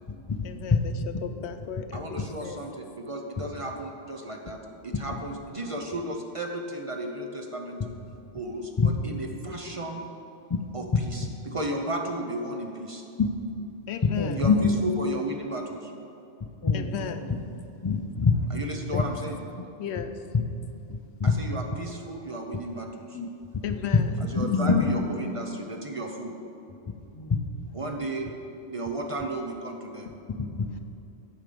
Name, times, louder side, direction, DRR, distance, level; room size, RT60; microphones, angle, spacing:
voice 1, 0.4-0.9 1.2-2.7 13.9-14.4 16.7-17.3 18.9-19.0 19.8-20.2 23.6-24.2, left 8 dB, 90° left, 9 dB, 0.9 m, -35 dB
voice 2, 1.9-4.6 4.8-7.8 8.3-10.0 10.7-13.0 14.3-15.9 18.5-19.4 21.2-23.2 24.2-26.3 27.7-28.3 28.7-30.1, right 1 dB, 35° right, 2 dB, 0.7 m, -34 dB
voice 3, 14.2-14.8 16.6-17.4 17.6-18.3 18.9-19.0 19.6-19.7 20.3-20.4 20.9-21.3 23.1-23.6 24.4-25.0 27.1-27.5 30.3-30.8, left 4 dB, 40° left, 7 dB, 0.4 m, -25 dB
9.5 x 5.0 x 6.8 m, 2.7 s
omnidirectional pair, 1.1 m